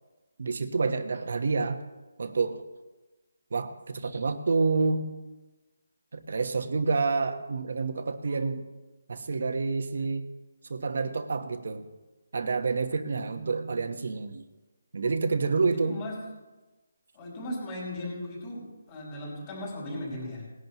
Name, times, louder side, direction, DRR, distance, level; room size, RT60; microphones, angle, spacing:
voice 1, 0.4-1.8 2.2-2.6 3.5-5.0 6.1-8.6 9.1-10.3 10.7-11.9 12.3-14.4 14.9-16.0, right 4 dB, 60° right, 7 dB, 1.2 m, -28 dB
voice 2, 13.1-13.9 15.7-16.2 17.1-20.5, left 1 dB, 20° left, -5 dB, 5.2 m, -38 dB
19.5 x 11.0 x 3.0 m, 1.1 s
hypercardioid pair, 170°, 0 cm